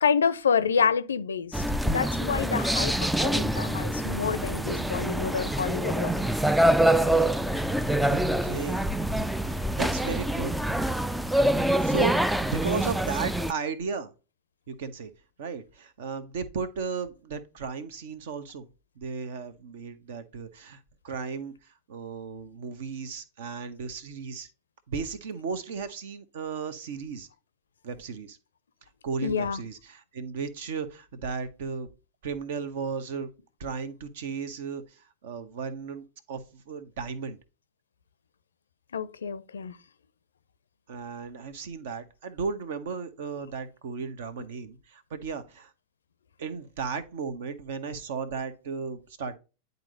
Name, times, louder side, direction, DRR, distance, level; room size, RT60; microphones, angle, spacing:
voice 1, 0.0-6.1 29.2-29.6 38.9-39.7, left 6 dB, 70° left, 0.5 m, -28 dB
sound 1, 1.5-13.5, right 1 dB, ahead, 0.3 m, -25 dB
voice 2, 8.0-8.9 9.5-10.5 11.3-12.1 12.4-14.1 14.7-15.1 15.4-18.7 19.0-24.5 24.9-27.3 27.8-28.4 29.0-31.9 32.2-33.3 33.6-37.4 40.9-45.7 46.4-49.4, right 5 dB, 55° right, 0.9 m, -35 dB
10.5 x 4.0 x 2.5 m
figure-of-eight pair, 90°, 0 cm